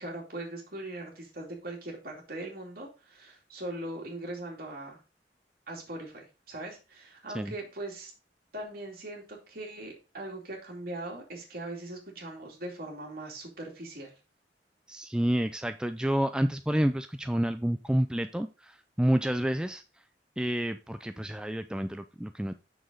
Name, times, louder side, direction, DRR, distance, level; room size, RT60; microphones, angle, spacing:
voice 1, 0.0-5.0 5.7-8.1 8.5-14.1, right 1 dB, 55° right, 2.7 m, -40 dB
voice 2, 14.9-19.8 20.4-22.5, equal, 5° right, 0.3 m, -29 dB
7.0 x 6.3 x 3.7 m
head